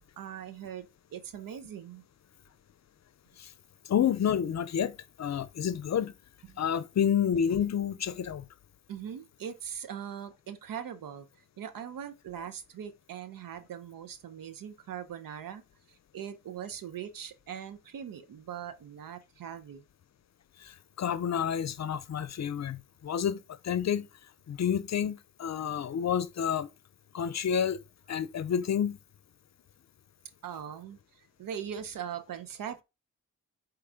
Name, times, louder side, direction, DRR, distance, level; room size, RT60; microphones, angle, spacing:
voice 1, 0.0-2.0 6.5-6.6 8.9-11.3 11.6-15.6 15.9-19.8 30.4-32.8, right 8 dB, 75° right, 0.8 m, -41 dB
voice 2, 3.8-6.1 6.6-8.5 20.6-24.1 24.5-26.7 27.1-27.8 28.1-29.0, left 8 dB, 50° left, 0.6 m, -29 dB
4.8 x 3.1 x 3.4 m
supercardioid pair, 40°, 34 cm